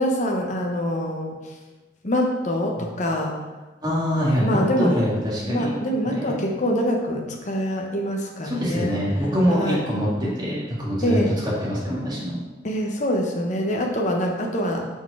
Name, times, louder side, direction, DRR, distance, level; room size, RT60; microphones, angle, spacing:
voice 1, 0.0-1.4 2.0-3.4 4.4-4.9 5.5-9.0 9.5-9.8 11.0-11.3 12.6-14.8, equal, 40° left, 0 dB, 0.9 m, -25 dB
voice 2, 3.8-5.7 6.1-6.4 8.4-10.1 10.3-11.2 11.4-12.4, equal, 20° right, -7 dB, 2.0 m, -24 dB
5.8 x 4.5 x 4.8 m, 1.2 s
head